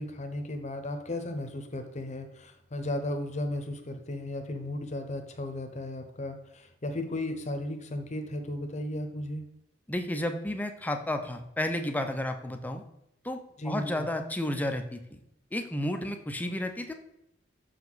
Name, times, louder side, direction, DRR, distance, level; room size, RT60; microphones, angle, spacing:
voice 1, 0.0-9.4 13.6-14.1, left 1 dB, 40° left, 7 dB, 0.8 m, -35 dB
voice 2, 9.9-12.8 13.2-13.4 13.6-15.0 15.5-16.9, left 1 dB, 10° left, 6 dB, 0.5 m, -32 dB
6.5 x 4.7 x 4.0 m, 0.82 s
head